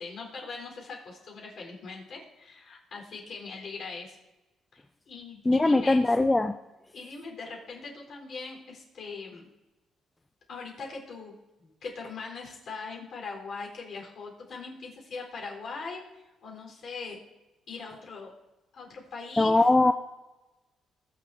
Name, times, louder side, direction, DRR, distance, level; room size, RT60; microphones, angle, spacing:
voice 1, 0.0-4.2 4.7-6.1 6.9-9.5 10.5-17.2 17.7-18.3 18.7-19.6, left 4 dB, 60° left, -1 dB, 4.3 m, -41 dB
voice 2, 5.5-6.6 19.4-19.9, left 2 dB, 15° left, 8 dB, 0.4 m, -21 dB
21.0 x 7.3 x 2.8 m, 1.1 s
cardioid pair, 90°, 0 cm